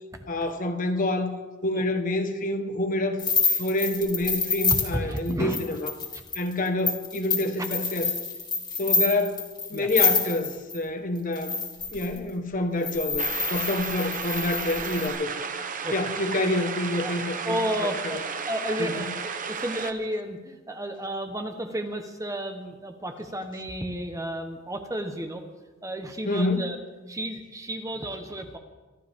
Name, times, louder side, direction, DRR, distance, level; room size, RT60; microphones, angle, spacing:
voice 1, 0.3-1.3 1.6-3.2 3.4-5.9 6.3-8.1 8.8-11.6 11.9-15.3 15.9-18.2 18.8-19.1 26.2-26.7, left 1 dB, 40° left, 6 dB, 1.3 m, -27 dB
sound 1, 3.2-10.8 11.3-12.2 12.8-15.1, left 4 dB, 20° left, 2.4 m, -27 dB
voice 2, 4.9-5.6 6.1-6.2 9.7-9.9 15.8-16.0 17.0-17.2 17.4-25.4 25.8-26.8 27.1-28.6, right 1 dB, 15° right, 5 dB, 1.1 m, -32 dB
sound 2, 13.2-19.9, right 6 dB, 40° right, 0.9 m, -33 dB
25.0 x 13.0 x 3.6 m, 1.2 s
head